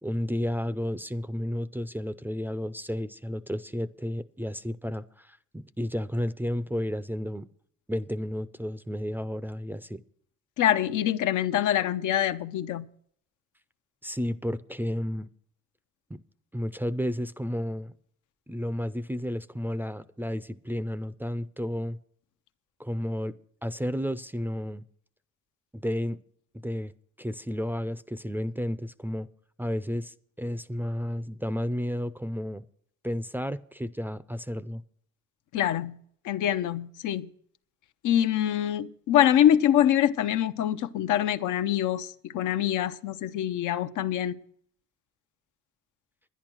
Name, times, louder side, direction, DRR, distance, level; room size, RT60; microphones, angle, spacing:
voice 1, 0.0-7.5 7.9-10.0 14.0-15.3 16.1-16.2 16.5-17.9 18.5-22.0 22.8-23.3 23.6-24.8 25.7-26.2 26.5-26.9 27.2-29.3 29.6-32.6 33.0-34.8, equal, 5° right, 0.4 m, -32 dB
voice 2, 10.6-12.9 35.5-36.0 36.2-37.3 38.0-44.4, left 11 dB, 80° left, 0.7 m, -25 dB
10.5 x 10.5 x 6.1 m
cardioid pair, 90°, 30 cm